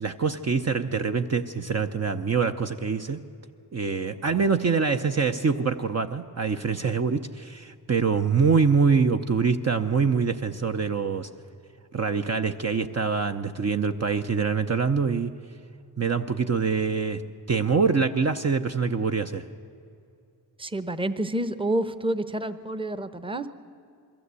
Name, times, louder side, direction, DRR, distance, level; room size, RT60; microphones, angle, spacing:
voice 1, 0.0-3.2 3.7-11.3 11.9-15.3 16.0-17.2 17.5-19.5, right 5 dB, 40° right, 6 dB, 0.7 m, -24 dB
voice 2, 20.6-23.5, right 1 dB, 15° right, 13 dB, 0.9 m, -28 dB
22.0 x 15.5 x 8.2 m, 2.5 s
cardioid pair, 75°, 41 cm